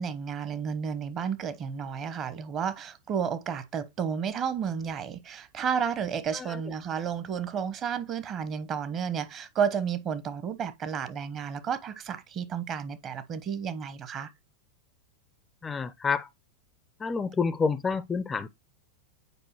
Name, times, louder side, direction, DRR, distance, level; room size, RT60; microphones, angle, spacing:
voice 1, 0.0-14.3, right 7 dB, 30° right, 0.8 m, -32 dB
voice 2, 15.6-16.3 17.0-18.5, left 5 dB, 15° left, 0.4 m, -29 dB
8.1 x 4.9 x 2.9 m
figure-of-eight pair, 90°, 0 cm